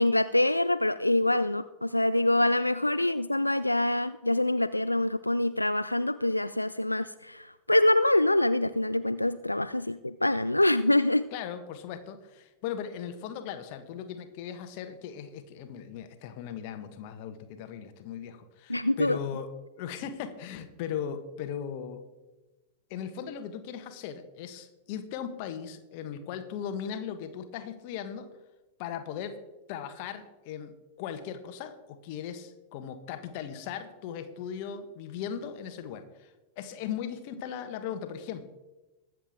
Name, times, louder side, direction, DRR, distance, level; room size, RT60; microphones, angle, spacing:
voice 1, 0.0-11.3 18.7-19.2, left 1 dB, 85° left, 13 dB, 0.3 m, -25 dB
voice 2, 11.3-19.5 19.8-22.0 22.9-28.3 28.8-29.4 29.7-30.7 31.0-38.5, left 8 dB, 45° left, 9 dB, 1.4 m, -38 dB
21.5 x 7.6 x 3.6 m, 1.1 s
figure-of-eight pair, 90°, 0 cm